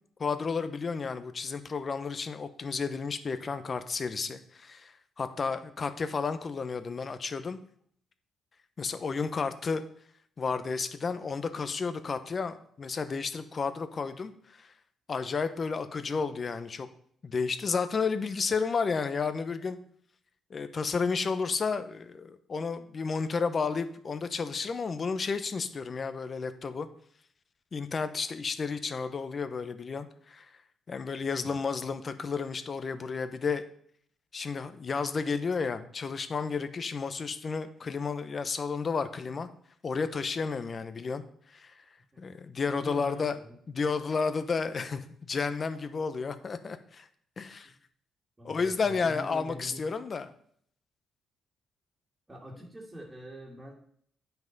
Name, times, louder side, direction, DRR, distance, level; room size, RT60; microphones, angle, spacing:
voice 1, 0.2-7.6 8.8-9.8 10.4-14.3 14.6-14.7 15.1-16.9 17.2-19.8 20.5-26.9 27.7-30.5 30.9-33.6 34.3-39.5 39.8-41.2 41.5-41.7 42.2-43.4 43.7-47.1 47.4-47.7 48.4-50.3, left 5 dB, 40° left, 11 dB, 0.9 m, -32 dB
voice 2, 31.2-31.6 42.1-42.2 42.6-43.6 47.6-47.7 48.4-49.8 52.3-53.7, equal, 15° right, -5 dB, 2.1 m, -45 dB
9.5 x 5.9 x 5.4 m, 0.64 s
cardioid pair, 90°, 0 cm